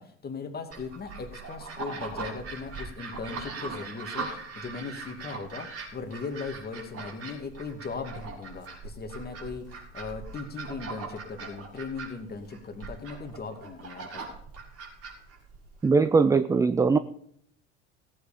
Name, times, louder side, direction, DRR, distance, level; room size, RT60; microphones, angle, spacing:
voice 1, 0.0-14.3, left 4 dB, 25° left, 5 dB, 2.4 m, -38 dB
sound 1, 0.7-15.9, right 4 dB, 40° right, 5.4 m, -40 dB
voice 2, 15.8-17.0, right 4 dB, 10° right, 13 dB, 0.4 m, -21 dB
16.5 x 8.5 x 5.2 m, 0.64 s
hypercardioid pair, 75°, 36 cm